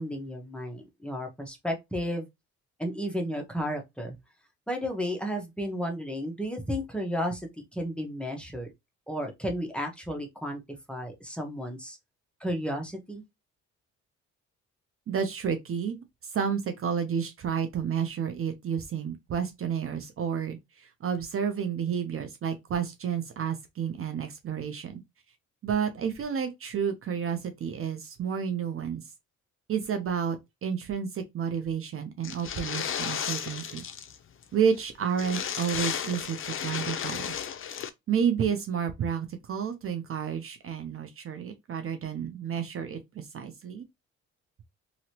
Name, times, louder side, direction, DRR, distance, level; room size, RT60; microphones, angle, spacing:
voice 1, 0.0-2.3 2.8-4.1 4.7-8.7 9.1-10.6 10.9-12.0 12.4-13.2, equal, 5° left, 0.9 m, -33 dB
voice 2, 15.1-16.0 16.3-25.0 25.6-29.0 29.7-33.8 34.5-37.3 38.1-43.8, right 7 dB, 45° right, 0.6 m, -30 dB
sound 1, 32.2-34.2 34.4-34.5 34.8-34.9 35.1-37.9, left 8 dB, 45° left, 0.5 m, -34 dB
2.9 x 2.7 x 2.8 m
cardioid pair, 90°, 30 cm